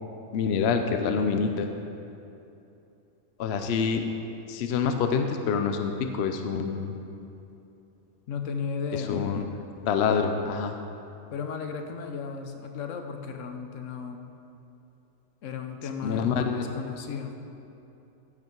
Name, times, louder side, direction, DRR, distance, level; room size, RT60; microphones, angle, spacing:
voice 1, 0.3-1.7 3.4-4.0 4.5-7.0 8.9-9.6 9.9-10.8 16.0-16.7, left 6 dB, 65° left, 6 dB, 0.8 m, -26 dB
voice 2, 8.3-9.2 11.3-14.3 15.4-17.3, left 6 dB, 85° left, 5 dB, 1.1 m, -35 dB
13.5 x 6.0 x 4.5 m, 2.8 s
omnidirectional pair, 1.3 m